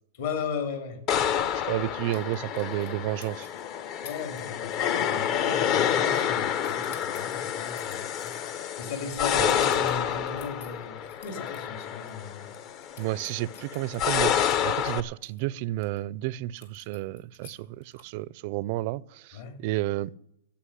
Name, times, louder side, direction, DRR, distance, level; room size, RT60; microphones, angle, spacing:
voice 1, 0.2-1.0 4.0-8.3 8.8-12.5 19.3-19.6, left 5 dB, 55° left, 2.9 m, -36 dB
sound 1, 1.1-15.0, left 9 dB, 35° left, 0.7 m, -28 dB
voice 2, 1.6-3.5 9.4-9.5 13.0-20.2, right 16 dB, 45° right, 0.4 m, -31 dB
sound 2, 2.1-3.0 3.2-3.6 4.0-4.4 4.7-5.0 5.3-6.3 6.6-11.6 12.0-12.1 12.4-16.0 16.6-18.2, left 6 dB, 75° left, 3.3 m, -51 dB
16.0 x 5.8 x 9.9 m
supercardioid pair, 155°, 0 cm